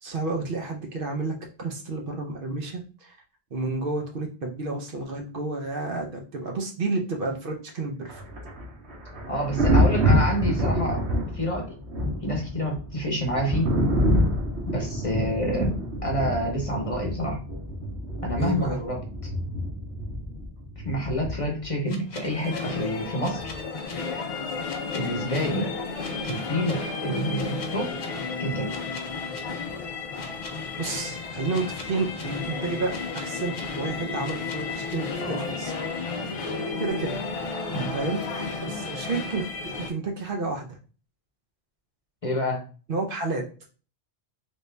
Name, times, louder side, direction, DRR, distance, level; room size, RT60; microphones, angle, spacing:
voice 1, 0.0-3.2 3.5-8.2 18.4-18.8 30.8-35.7 36.8-37.2 37.9-39.5 39.8-40.8 42.9-43.4, right 3 dB, 60° right, 2 dB, 0.8 m, -31 dB
Thunder, 8.1-21.7 23.4-23.6, equal, 80° right, 1.3 m, -27 dB
voice 2, 9.3-11.1 11.3-11.7 12.2-13.7 14.7-15.7 16.0-17.4 18.2-19.0 20.8-23.5 24.9-25.8 26.2-28.0 28.4-28.8 35.2-35.4 37.7-37.9 42.2-42.6, equal, 35° left, 1 dB, 0.8 m, -28 dB
sound 1, 21.9-22.6 23.2-23.9 24.6-25.4 26.0-26.7 27.3-28.1 28.7-29.4 30.2-30.9 31.5-32.2 32.9-33.6 34.2-34.9, left 3 dB, 80° left, 1.0 m, -43 dB
sound 2, 22.1-39.9, left 4 dB, 50° left, 0.4 m, -33 dB
3.5 x 2.6 x 3.2 m, 0.37 s
omnidirectional pair, 1.1 m